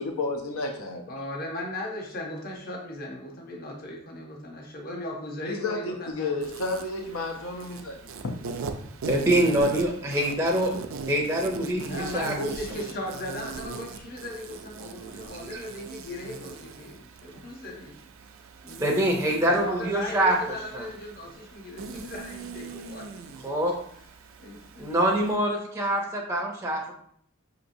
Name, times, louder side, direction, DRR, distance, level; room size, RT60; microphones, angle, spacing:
voice 1, 0.0-1.0 5.4-8.4, left 3 dB, 80° left, 3 dB, 0.6 m, -31 dB
voice 2, 1.1-6.4 8.8-9.3 11.8-17.9 18.6-19.1 19.4-23.6 24.4-25.2, left 1 dB, 45° left, 0 dB, 0.8 m, -37 dB
Insect, 6.4-25.4, right 4 dB, 70° right, 0.4 m, -40 dB
voice 3, 9.1-10.7 11.1-12.3 15.5-15.6 18.8-20.9 23.4-23.7 24.8-26.9, right 1 dB, 15° right, 0 dB, 0.5 m, -25 dB
5.7 x 2.9 x 2.6 m, 0.66 s
head